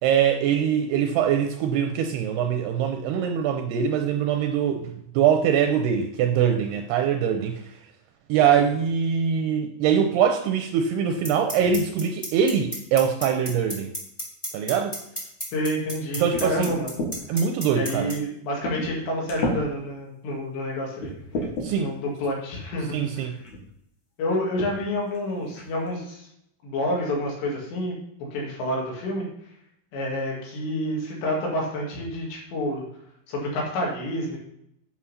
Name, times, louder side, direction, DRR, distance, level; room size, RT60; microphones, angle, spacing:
voice 1, 0.0-4.9 5.1-7.5 8.3-13.9 14.5-15.0 16.2-16.7 17.3-18.1 21.6-21.9 22.9-23.3, right 8 dB, 80° right, 5 dB, 2.5 m, -23 dB
sound 1, 11.2-18.1, equal, 10° left, 1.5 m, -31 dB
voice 2, 15.5-17.0 17.7-21.1 21.8-23.4 24.2-26.3 26.6-28.0 28.3-29.3 29.9-32.9 33.3-34.4, left 1 dB, 75° left, -2 dB, 4.5 m, -28 dB
sound 2, 16.3-17.1 17.9-18.0 18.6-19.0 19.3-19.6 20.3-20.4 21.0-21.7 22.8-22.9 23.4-23.6 24.6-24.7 25.1-25.2 25.5-25.9, left 1 dB, 45° left, 2.6 m, -31 dB
8.8 x 6.3 x 5.6 m, 0.75 s
omnidirectional pair, 5.2 m